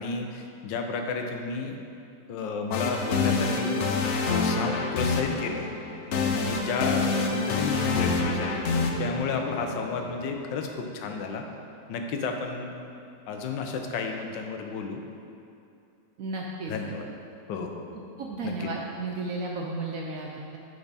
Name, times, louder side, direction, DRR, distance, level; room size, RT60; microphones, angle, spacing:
voice 1, 0.0-1.8 2.3-3.8 4.3-5.7 6.3-11.4 11.9-12.7 13.3-15.0 16.7-17.1 17.5-18.1 18.4-18.7, left 4 dB, 85° left, 4 dB, 1.4 m, -32 dB
sound 1, 2.7-10.6, left 4 dB, 70° left, 0.6 m, -27 dB
voice 2, 16.2-16.7 18.2-20.6, right 3 dB, 70° right, -1 dB, 0.8 m, -33 dB
8.5 x 4.6 x 4.1 m, 2.7 s
omnidirectional pair, 1.9 m